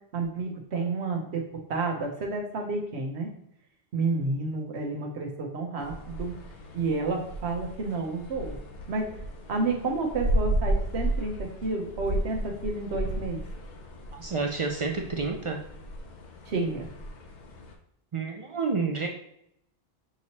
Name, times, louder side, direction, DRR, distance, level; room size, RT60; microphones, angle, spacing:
voice 1, 0.1-1.4 1.7-3.3 3.9-6.3 6.7-8.6 8.9-9.1 9.5-13.4 16.5-16.9, right 3 dB, 85° right, 2 dB, 1.1 m, -30 dB
sound 1, 5.8-17.7, right 1 dB, 50° left, 0.7 m, -33 dB
voice 2, 14.1-15.6 18.1-19.1, right 4 dB, 55° right, 2 dB, 0.3 m, -29 dB
6.0 x 2.9 x 2.8 m, 0.77 s
omnidirectional pair, 1.1 m